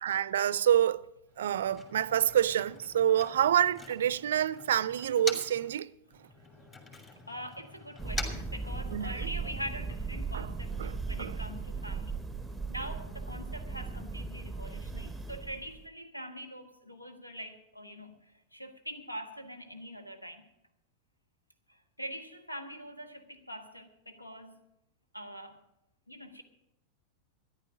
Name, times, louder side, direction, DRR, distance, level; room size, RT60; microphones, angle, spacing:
voice 1, 0.0-1.0 1.4-5.9 8.9-9.3 10.3-10.5 10.8-11.4, right 10 dB, 60° right, 0.4 m, -27 dB
Motor vehicle (road), 1.3-5.7 6.1-9.3, left 3 dB, 25° left, 2.7 m, -45 dB
voice 2, 7.3-12.2 12.7-20.5 21.7-24.6 25.1-25.6 26.1-26.4, equal, 90° left, 1.3 m, -43 dB
Thunder, 8.0-15.9, right 4 dB, 5° right, 0.8 m, -37 dB
13.5 x 10.5 x 6.1 m
figure-of-eight pair, 90°, 0 cm